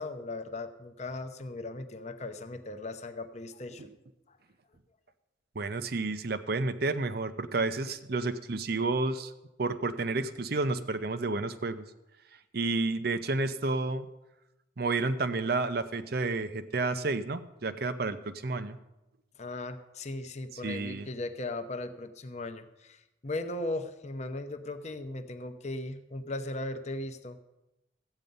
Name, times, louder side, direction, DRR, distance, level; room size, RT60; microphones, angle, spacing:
voice 1, 0.0-3.9 19.4-27.4, left 2 dB, 35° left, 8 dB, 0.8 m, -38 dB
voice 2, 5.6-9.3 9.6-11.9 12.5-14.1 14.8-18.8 20.5-21.1, right 3 dB, 50° right, 12 dB, 0.7 m, -30 dB
14.0 x 9.0 x 5.4 m, 0.96 s
head